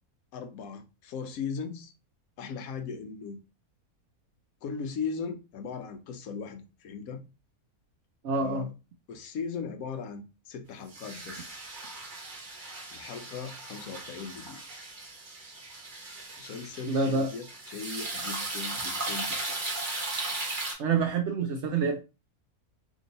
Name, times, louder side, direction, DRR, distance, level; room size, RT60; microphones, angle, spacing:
voice 1, 0.3-1.9 2.4-3.4 4.6-7.2 8.3-8.7 9.1-11.6 12.9-14.6 16.4-19.6, left 5 dB, 75° left, 1.0 m, -38 dB
voice 2, 8.2-8.7 16.9-17.3 20.8-22.0, right 4 dB, 65° right, 0.7 m, -27 dB
sound 1, 10.9-20.7, right 2 dB, 35° right, 1.1 m, -37 dB
2.9 x 2.7 x 3.9 m
omnidirectional pair, 1.6 m